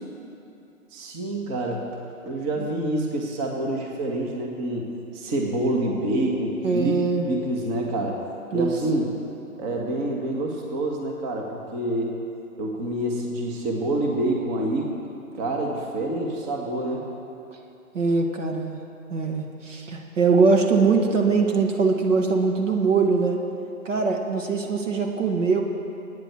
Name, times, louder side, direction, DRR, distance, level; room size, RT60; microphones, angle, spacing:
voice 1, 0.9-1.8 2.2-4.9 5.1-7.0 7.3-8.2 8.5-9.1 9.6-12.1 12.6-14.9 15.4-17.0, right 1 dB, 25° right, 0 dB, 1.8 m, -27 dB
voice 2, 6.6-7.3 8.5-8.7 17.9-18.8 19.1-23.4 23.8-25.6, right 4 dB, 55° right, 2 dB, 2.0 m, -22 dB
24.0 x 9.7 x 4.8 m, 2.8 s
figure-of-eight pair, 135°, 43 cm